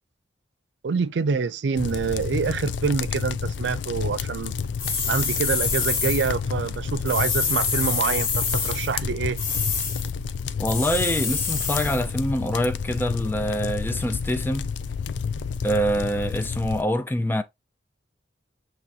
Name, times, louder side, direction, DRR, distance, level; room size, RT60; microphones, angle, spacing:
voice 1, 0.8-4.6 5.1-9.4, right 5 dB, 75° right, 0.4 m, -26 dB
sound 1, 1.8-16.8, left 6 dB, 80° left, 0.4 m, -30 dB
sound 2, 4.8-6.3 7.0-8.9 9.4-10.1 10.7-12.0, left 5 dB, 50° left, 1.3 m, -27 dB
voice 2, 10.6-14.7 15.6-17.4, equal, 10° left, 0.3 m, -25 dB
6.1 x 3.1 x 2.7 m
head